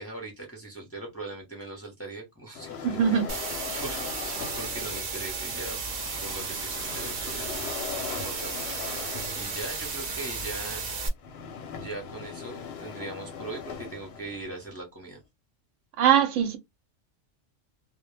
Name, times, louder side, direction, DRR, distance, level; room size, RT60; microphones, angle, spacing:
voice 1, 0.0-5.8 6.2-10.9 11.7-15.2, right 2 dB, 15° left, 0.5 m, -41 dB
sound 1, 2.5-5.1 5.8-14.7, left 6 dB, 65° left, 0.7 m, -40 dB
voice 2, 2.8-3.3 16.0-16.6, right 9 dB, 75° right, 0.9 m, -21 dB
sound 2, 3.3-11.1, right 4 dB, 45° right, 0.5 m, -34 dB
2.1 x 2.1 x 3.1 m
omnidirectional pair, 1.3 m